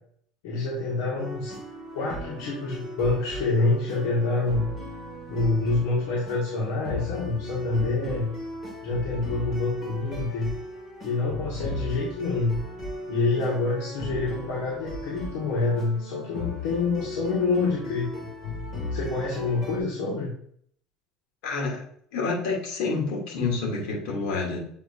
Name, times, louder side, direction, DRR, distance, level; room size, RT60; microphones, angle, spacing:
voice 1, 0.4-1.5 1.9-4.6 5.3-8.3 8.8-10.5 11.0-12.6 13.1-18.3 18.9-20.3, left 3 dB, 85° left, -5 dB, 1.8 m, -27 dB
sound 1, 1.2-19.8, left 1 dB, 25° left, 2.5 m, -37 dB
voice 2, 21.4-21.8 22.1-24.6, left 4 dB, 70° left, -2 dB, 2.9 m, -28 dB
7.6 x 5.0 x 2.8 m, 0.62 s
cardioid pair, 155°, 0 cm